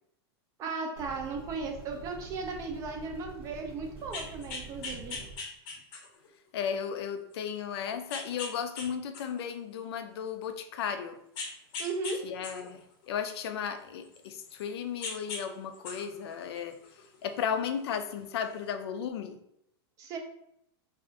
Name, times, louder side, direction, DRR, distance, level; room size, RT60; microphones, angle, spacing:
voice 1, 0.6-5.2 11.8-12.2 20.0-20.2, right 4 dB, 25° right, 4 dB, 0.4 m, -36 dB
sound 1, 1.0-5.4, right 4 dB, 70° right, 0.7 m, -47 dB
sound 2, 4.0-6.3 6.8-6.9 8.1-8.9 9.1-10.5 11.4-12.2 12.4-14.6 15.0-15.4 15.7-17.2 18.2-18.3, left 4 dB, 40° left, 0.6 m, -40 dB
voice 2, 6.5-11.2 12.2-12.8 13.1-16.8 17.2-19.4, left 7 dB, 75° left, 8 dB, 0.4 m, -35 dB
2.5 x 2.3 x 3.7 m, 0.77 s
supercardioid pair, 160°, 13 cm